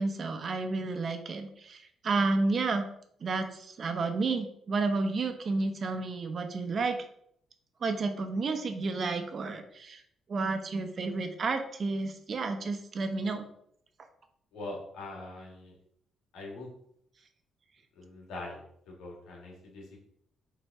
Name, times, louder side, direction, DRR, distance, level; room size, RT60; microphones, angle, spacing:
voice 1, 0.0-2.9 3.2-7.0 7.8-10.0 10.3-13.5, right 3 dB, 45° right, 6 dB, 0.9 m, -31 dB
voice 2, 14.5-15.8 16.3-16.7 17.9-20.1, left 2 dB, 90° left, -2 dB, 2.2 m, -43 dB
5.3 x 4.0 x 4.8 m, 0.70 s
cardioid pair, 90°, 0 cm